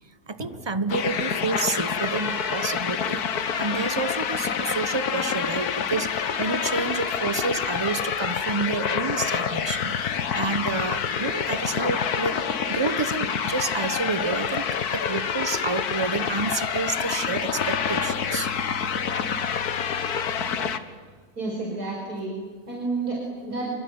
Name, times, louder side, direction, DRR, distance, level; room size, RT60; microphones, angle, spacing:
voice 1, 0.3-12.4 12.7-18.5 20.4-20.5, right 4 dB, 25° right, 13 dB, 0.6 m, -29 dB
sound 1, 0.9-20.8, left 7 dB, 85° left, 1.7 m, -27 dB
voice 2, 21.4-22.3 22.7-23.7, right 3 dB, 90° right, -2 dB, 5.7 m, -30 dB
26.0 x 23.0 x 9.5 m, 1.5 s
omnidirectional pair, 1.6 m